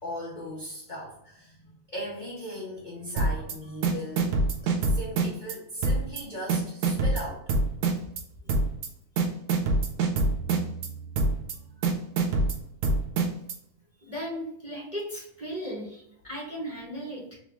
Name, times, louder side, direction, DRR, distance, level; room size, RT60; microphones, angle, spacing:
voice 1, 0.0-7.4, equal, 40° left, -4 dB, 0.7 m, -38 dB
sound 1, 3.2-3.5 3.8-5.6 5.8-6.2 6.5-8.2 8.5-8.9 9.2-10.9 11.2-11.6 11.8-13.6, right 3 dB, 85° right, 1.2 m, -25 dB
sound 2, 10.2-12.6, right 6 dB, 60° right, 1.1 m, -42 dB
voice 2, 14.1-17.4, equal, 10° right, -3 dB, 1.1 m, -36 dB
3.8 x 3.0 x 3.5 m, 0.76 s
omnidirectional pair, 1.6 m